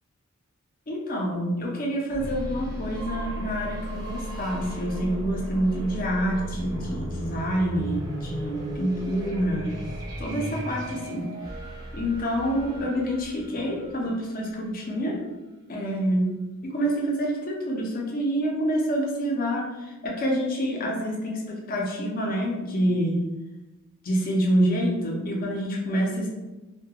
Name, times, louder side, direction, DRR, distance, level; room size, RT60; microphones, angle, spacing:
voice 1, 0.9-9.8 10.2-11.3 11.9-15.2 15.7-23.2 24.0-26.3, equal, 40° left, -1 dB, 0.5 m, -27 dB
sound 1, 2.1-14.8, equal, 15° right, 0.6 m, -36 dB
2.3 x 2.2 x 2.8 m, 1.1 s
head